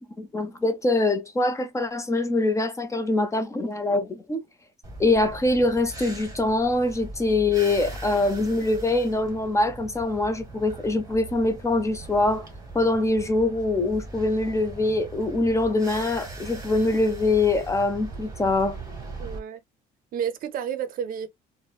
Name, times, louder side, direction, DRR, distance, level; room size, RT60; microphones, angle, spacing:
voice 1, 0.2-4.4 5.0-12.5 12.7-18.8, left 2 dB, 15° left, 0.5 m, -24 dB
sound 1, 4.8-19.4, right 3 dB, 20° right, 1.4 m, -40 dB
voice 2, 19.2-19.6 20.1-21.3, right 8 dB, 60° right, 0.5 m, -30 dB
4.1 x 2.1 x 2.2 m
cardioid pair, 110°, 17 cm